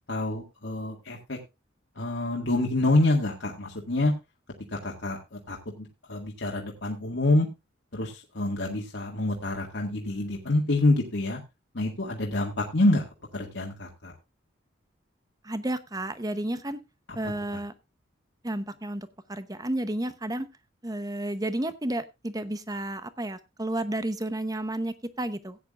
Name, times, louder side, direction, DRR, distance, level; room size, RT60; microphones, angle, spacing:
voice 1, 0.1-1.4 2.0-4.1 4.8-7.5 7.9-11.4 11.7-13.0 13.3-14.1, left 2 dB, 60° left, -1 dB, 1.9 m, -27 dB
voice 2, 15.4-16.8 17.1-17.7 18.4-20.5 20.8-25.6, right 1 dB, 20° right, 12 dB, 0.8 m, -32 dB
16.0 x 9.5 x 2.4 m, 0.24 s
head